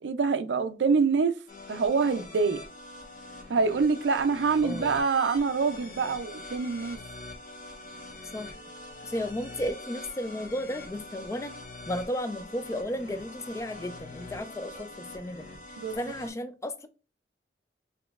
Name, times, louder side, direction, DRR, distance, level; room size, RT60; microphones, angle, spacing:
voice 1, 0.0-1.4 1.7-2.6 3.5-7.0 15.8-16.1, right 5 dB, 90° right, 0.4 m, -25 dB
sound 1, 1.5-16.3, left 2 dB, 50° left, 1.2 m, -44 dB
voice 2, 4.6-4.9 8.3-8.5 9.1-11.5 11.9-15.4 15.9-16.9, equal, 15° left, 0.3 m, -34 dB
5.1 x 2.9 x 2.3 m
head